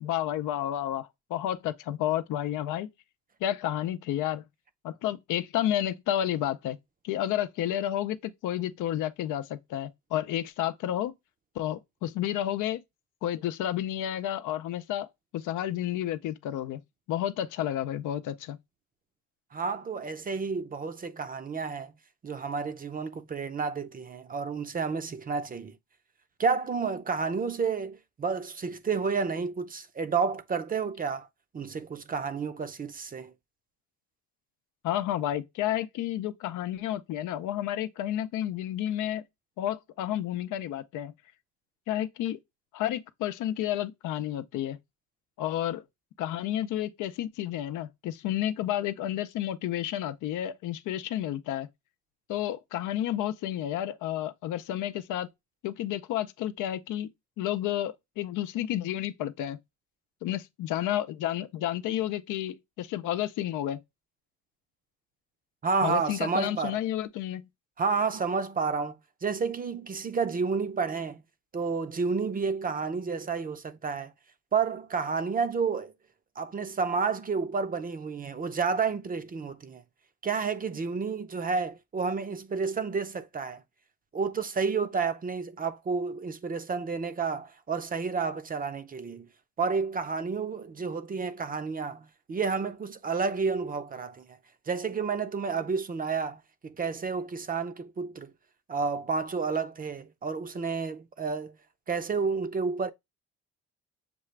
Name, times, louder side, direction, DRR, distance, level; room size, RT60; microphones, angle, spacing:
voice 1, 0.0-2.9 3.4-4.4 4.8-6.8 7.0-11.1 11.6-12.8 13.2-15.1 15.3-16.8 17.1-18.6 34.8-39.2 39.6-41.1 41.9-42.4 42.7-44.8 45.4-45.8 46.2-51.7 52.3-55.3 55.6-57.1 57.4-59.6 60.2-63.8 65.8-67.4, left 12 dB, 85° left, 0.6 m, -31 dB
voice 2, 19.5-21.9 22.2-25.8 26.4-31.3 31.5-33.3 65.6-66.8 67.8-68.9 69.2-71.2 71.5-74.1 74.5-75.9 76.4-79.8 80.2-83.6 84.1-89.3 89.6-94.3 94.7-98.3 98.7-101.5 101.9-102.9, right 5 dB, 30° right, 0.5 m, -30 dB
6.8 x 2.4 x 3.2 m
cardioid pair, 90°, 30 cm